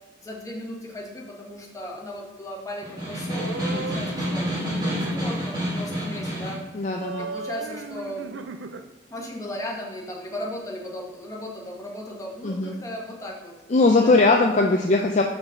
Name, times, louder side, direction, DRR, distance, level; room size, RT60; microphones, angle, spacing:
voice 1, 0.2-4.5 4.9-6.6 7.2-8.4 9.1-14.2 14.7-14.9, left 1 dB, 15° left, -2 dB, 1.2 m, -36 dB
Snare drum, 2.8-6.7, equal, 20° right, 2.2 m, -28 dB
sound 1, 3.3-5.2 7.0-8.9, right 4 dB, 70° right, 0.4 m, -36 dB
voice 2, 6.7-7.3 12.4-12.8 13.7-15.2, left 3 dB, 40° left, 1 dB, 0.4 m, -20 dB
5.4 x 3.9 x 6.0 m, 0.99 s
head